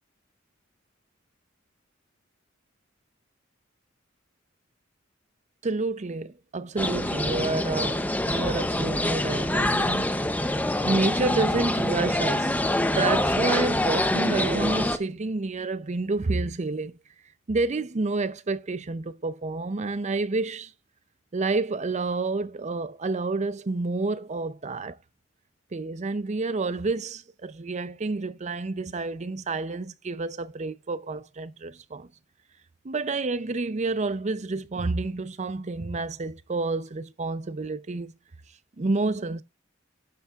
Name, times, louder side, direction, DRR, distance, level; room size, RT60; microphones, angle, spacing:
voice 1, 5.6-10.3 10.8-12.6 12.9-16.9 17.5-20.7 21.3-25.0 25.7-32.1 32.8-38.1 38.8-39.4, right 3 dB, 35° right, 0.6 m, -29 dB
sound 1, 6.8-15.0, left 1 dB, 10° left, 0.7 m, -25 dB
11.5 x 8.1 x 2.4 m
head